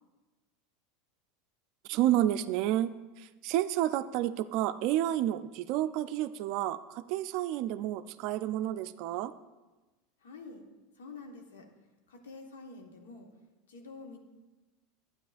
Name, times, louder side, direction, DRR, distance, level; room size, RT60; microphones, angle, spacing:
voice 1, 1.9-9.3, right 13 dB, 55° right, 13 dB, 0.4 m, -30 dB
voice 2, 10.2-10.6 10.9-11.7 12.1-13.3 13.7-14.2, left 3 dB, 75° left, 3 dB, 1.3 m, -47 dB
12.0 x 8.7 x 2.5 m, 1.2 s
hypercardioid pair, 90°, 0 cm